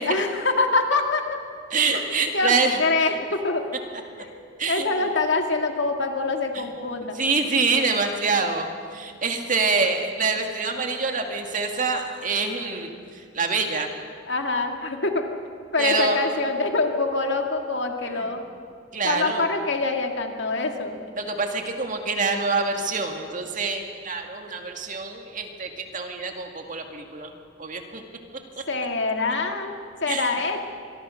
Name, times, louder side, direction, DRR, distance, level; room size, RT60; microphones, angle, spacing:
voice 1, 0.0-1.4 1.9-2.1 2.3-3.7 4.2-4.4 4.7-7.2 14.3-15.3 15.7-18.4 19.0-21.0 28.7-30.6, left 3 dB, 60° left, 4 dB, 2.2 m, -25 dB
voice 2, 1.7-3.1 4.6-4.9 6.5-6.6 7.1-13.9 15.8-16.2 18.0-18.3 18.9-19.4 21.2-27.3 27.6-28.0 28.5-28.6 30.1-30.4, right 4 dB, 40° right, 4 dB, 2.2 m, -26 dB
25.5 x 22.0 x 6.5 m, 2.3 s
head